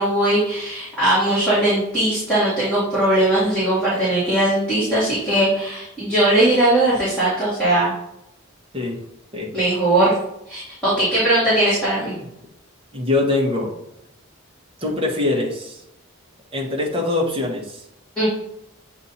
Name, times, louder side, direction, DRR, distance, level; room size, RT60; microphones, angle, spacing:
voice 1, 0.0-7.9 9.5-10.1 10.5-12.1 18.2-18.3, right 1 dB, 5° left, -12 dB, 2.3 m, -19 dB
voice 2, 12.9-13.7 14.8-15.8 16.5-17.6, left 2 dB, 25° right, -2 dB, 1.3 m, -23 dB
8.0 x 2.8 x 4.2 m, 0.81 s
head